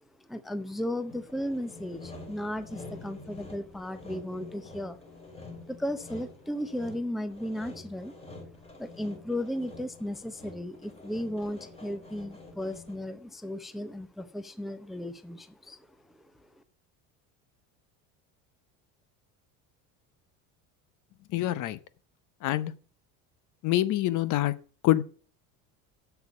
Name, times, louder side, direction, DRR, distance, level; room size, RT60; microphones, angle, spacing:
voice 1, 0.2-5.0 5.7-8.1 8.8-15.9 16.1-16.6, left 1 dB, ahead, 0.6 m, -35 dB
Sawing, 1.1-13.2, left 3 dB, 15° left, 3.0 m, -47 dB
voice 2, 21.3-21.8 22.4-22.7 23.6-24.5 24.8-25.0, left 14 dB, 50° left, 0.9 m, -25 dB
8.0 x 7.0 x 7.1 m
cardioid pair, 140°, 38 cm